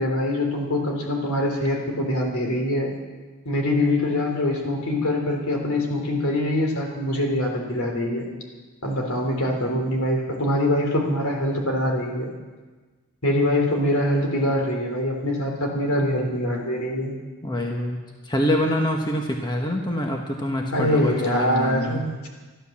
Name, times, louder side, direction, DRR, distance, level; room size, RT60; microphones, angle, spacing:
voice 1, 0.0-2.9 3.4-8.2 8.8-12.3 13.2-17.1 20.7-22.3, left 1 dB, 70° left, 1 dB, 3.3 m, -24 dB
voice 2, 16.0-16.5 17.4-18.0 18.2-22.0, equal, 20° left, 1 dB, 1.2 m, -25 dB
13.5 x 12.5 x 7.2 m, 1.3 s
head